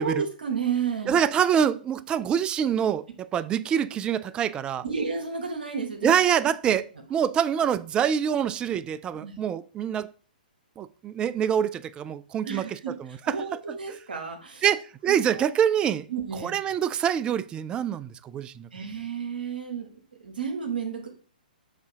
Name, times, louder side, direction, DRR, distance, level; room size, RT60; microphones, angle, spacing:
voice 1, 0.0-1.1 4.8-6.1 6.7-6.8 9.2-9.4 12.4-12.9 13.3-14.6 15.1-15.4 16.1-16.6 18.7-19.9 20.2-21.1, right 6 dB, 75° right, 1.3 m, -31 dB
voice 2, 1.1-4.8 6.0-6.8 7.1-10.1 10.8-12.6 13.0-13.4 14.6-16.1 16.4-18.7, right 8 dB, 20° right, 0.3 m, -25 dB
7.2 x 2.8 x 4.7 m
hypercardioid pair, 125°, 5 cm